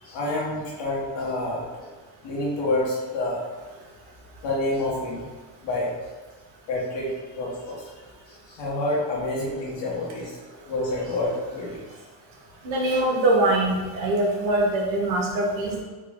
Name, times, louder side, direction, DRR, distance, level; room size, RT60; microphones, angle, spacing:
voice 1, 0.0-1.8 2.2-3.4 4.4-5.3 5.6-5.9 6.7-7.9 8.5-10.3 10.7-11.8 12.8-13.0, left 2 dB, 70° left, -4 dB, 1.2 m, -28 dB
voice 2, 12.6-15.8, right 1 dB, 80° right, -1 dB, 1.0 m, -23 dB
3.6 x 2.2 x 3.5 m, 1.3 s
cardioid pair, 160°, 46 cm